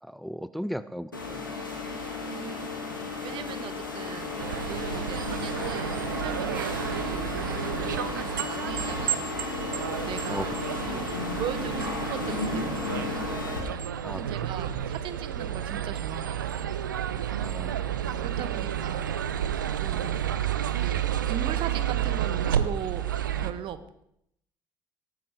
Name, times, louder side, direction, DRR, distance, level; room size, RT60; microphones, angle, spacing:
voice 1, 0.0-1.5 10.3-10.6 14.0-14.5 17.4-18.4, equal, ahead, 15 dB, 0.6 m, -37 dB
sound 1, 1.1-13.6, left 3 dB, 85° left, 2.2 m, -34 dB
voice 2, 2.2-2.8 3.2-4.4 4.6-9.4 10.1-10.6 10.9-11.1 11.4-13.3 14.1-16.7 18.2-19.1 19.8-20.3 20.7-23.1 23.4-24.0, right 10 dB, 50° right, 13 dB, 1.2 m, -39 dB
sound 2, 4.4-23.5, right 9 dB, 75° right, 0.7 m, -31 dB
17.5 x 13.5 x 5.0 m, 0.74 s
figure-of-eight pair, 50°, 10 cm